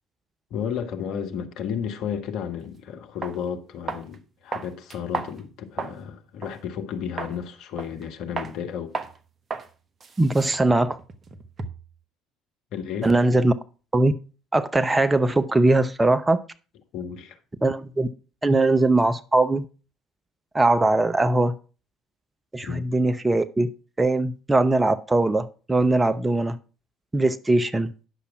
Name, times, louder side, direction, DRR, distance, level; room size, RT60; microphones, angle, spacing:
voice 1, 0.5-8.9 12.7-13.1 16.9-17.4 22.7-22.9, left 8 dB, 55° left, 1.4 m, -32 dB
sound 1, 2.6-2.7 3.2-3.4 3.9-4.2 4.5-6.0 6.4-6.6 7.2-7.4 7.8-8.1 8.4-8.6 8.9-9.2 9.5-9.7 10.0-11.9, right 4 dB, 30° right, 1.1 m, -34 dB
voice 2, 10.2-11.0 13.0-13.5 13.9-14.1 14.5-16.4 17.6-18.1 18.4-19.6 20.5-21.5 22.5-23.7 24.0-26.6 27.1-27.9, right 2 dB, 15° right, 0.7 m, -20 dB
10.0 x 6.8 x 4.7 m
figure-of-eight pair, 55°, 0 cm